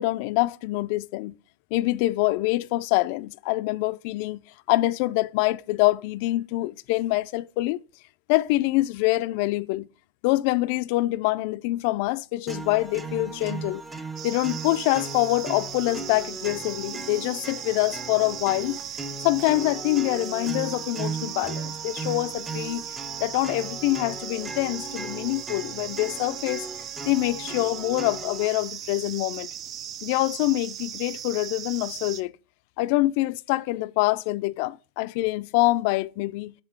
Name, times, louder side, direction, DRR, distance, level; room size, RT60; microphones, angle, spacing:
voice 1, 0.0-1.4 1.7-4.4 4.7-7.8 8.3-9.9 10.2-13.8 14.2-18.8 19.2-22.8 23.2-26.7 27.1-29.5 30.0-32.3 32.8-36.5, left 19 dB, 60° left, 0.3 m, -25 dB
sound 1, 12.5-28.5, right 3 dB, 15° right, 0.8 m, -37 dB
sound 2, 14.2-32.2, right 10 dB, 40° right, 0.4 m, -38 dB
6.7 x 3.7 x 4.5 m
hypercardioid pair, 105°, 0 cm